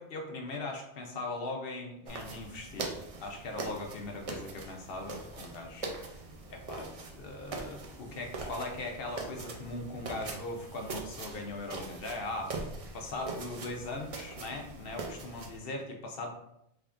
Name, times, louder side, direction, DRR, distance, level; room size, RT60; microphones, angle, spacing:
voice 1, 0.0-6.2 6.5-16.3, left 2 dB, 60° left, 2 dB, 0.7 m, -40 dB
sound 1, 2.0-15.6, right 3 dB, 65° right, 0.3 m, -42 dB
3.5 x 3.4 x 2.4 m, 0.81 s
omnidirectional pair, 1.2 m